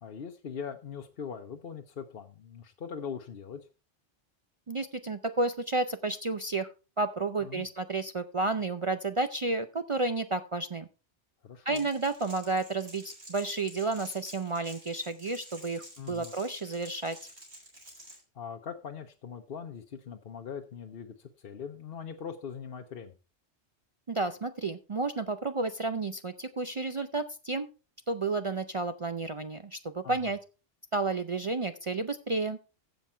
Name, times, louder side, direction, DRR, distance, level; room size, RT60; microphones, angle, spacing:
voice 1, 0.0-3.7 7.4-7.7 11.4-11.9 16.0-16.3 18.3-23.1 30.0-30.3, left 7 dB, 60° left, 4 dB, 1.0 m, -41 dB
voice 2, 4.7-6.7 7.0-10.9 11.7-17.2 24.1-27.7 28.1-30.4 30.9-32.6, right 3 dB, 40° right, 10 dB, 0.4 m, -31 dB
Crackle, 11.7-18.2, right 1 dB, 70° right, 3.8 m, -50 dB
15.0 x 5.3 x 4.3 m, 0.32 s
omnidirectional pair, 1.1 m